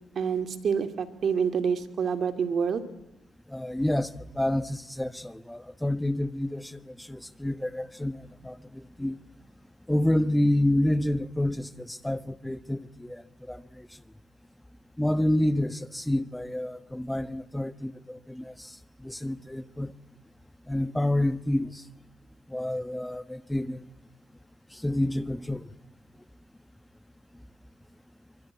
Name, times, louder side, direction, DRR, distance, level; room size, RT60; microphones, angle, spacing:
voice 1, 0.2-2.9, right 6 dB, 55° right, 2.3 m, -27 dB
voice 2, 3.5-9.2 9.9-14.0 15.0-19.9 20.7-21.9 22.5-23.9 24.7-25.7, left 1 dB, 5° left, 1.2 m, -29 dB
25.0 x 24.0 x 9.6 m
cardioid pair, 90°, 0 cm